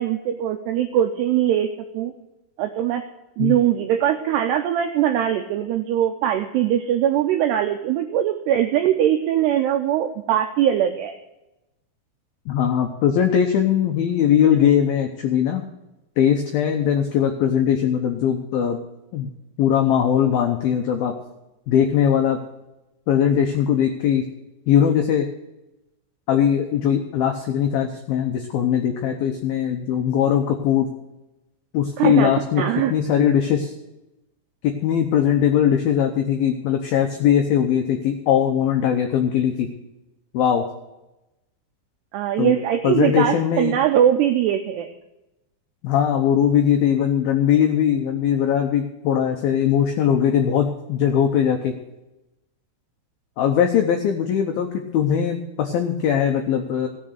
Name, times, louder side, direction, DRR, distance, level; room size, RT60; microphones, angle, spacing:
voice 1, 0.0-1.7 1.9-2.1 2.6-3.0 3.4-11.1 32.0-32.9 42.1-44.9, right 10 dB, 85° right, 6 dB, 2.3 m, -21 dB
voice 2, 12.5-15.6 16.2-18.8 19.1-19.3 19.6-21.1 21.7-22.4 23.1-24.2 24.7-25.3 26.3-30.9 31.7-32.6 32.9-33.7 34.6-39.7 40.3-40.6 42.4-42.5 42.8-43.8 45.8-51.7 53.4-56.9, left 9 dB, 85° left, 4 dB, 2.1 m, -20 dB
16.5 x 6.7 x 6.6 m, 0.96 s
omnidirectional pair, 5.6 m